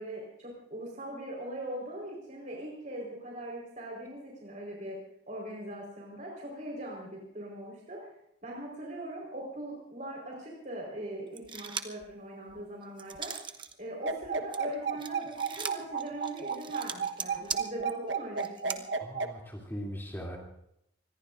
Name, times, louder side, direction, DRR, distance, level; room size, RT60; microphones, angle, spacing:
voice 1, 0.0-5.0 5.3-8.0 8.4-13.3 13.8-18.8, right 1 dB, 45° right, -2 dB, 4.3 m, -40 dB
sound 1, 11.4-12.1 12.5-13.7 14.1-18.8, right 6 dB, 25° right, 0.9 m, -39 dB
sound 2, 14.0-19.3, right 6 dB, 70° right, 1.2 m, -32 dB
voice 2, 19.0-20.4, equal, 10° left, -2 dB, 2.8 m, -39 dB
25.5 x 21.0 x 2.6 m, 0.77 s
head